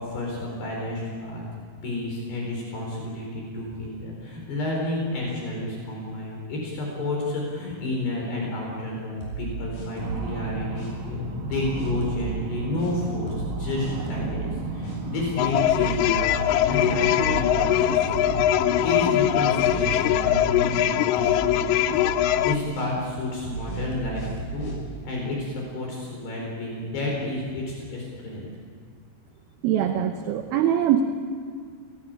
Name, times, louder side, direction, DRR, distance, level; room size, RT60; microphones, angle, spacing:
voice 1, 0.0-1.4 1.8-18.3 18.8-24.7 25.0-28.5, left 2 dB, 60° left, -1 dB, 6.4 m, -30 dB
sound 1, 9.2-10.3 10.8-10.9 11.5-12.3 12.8-12.9 13.3-13.5 13.8-14.3 14.8-15.0 15.6-17.5 17.7-18.5 18.8-18.9 19.5-20.8 21.2-21.4 21.7-22.2 22.7-22.8 23.4-24.8, right 3 dB, 40° left, 7.4 m, -35 dB
sound 2, 10.0-20.2, right 2 dB, 50° right, 3.1 m, -35 dB
sound 3, 15.4-22.6, left 12 dB, 90° left, 3.3 m, -22 dB
voice 2, 29.6-31.0, right 10 dB, 75° right, 6 dB, 2.3 m, -22 dB
25.5 x 18.5 x 8.9 m, 2.1 s
omnidirectional pair, 5.5 m